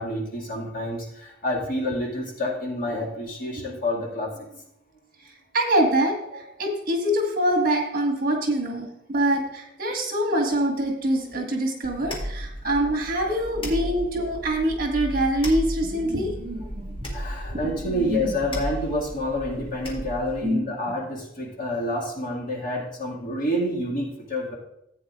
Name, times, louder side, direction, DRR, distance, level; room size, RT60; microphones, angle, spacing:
voice 1, 0.0-4.3 12.1-12.2 17.1-24.5, left 1 dB, 45° left, -2 dB, 2.2 m, -28 dB
voice 2, 5.5-17.1 17.5-18.4 20.4-20.7, right 1 dB, 50° right, 1 dB, 1.8 m, -25 dB
sound 1, 11.8-20.4, equal, 25° left, 1.7 m, -34 dB
14.5 x 8.6 x 2.5 m, 0.78 s
head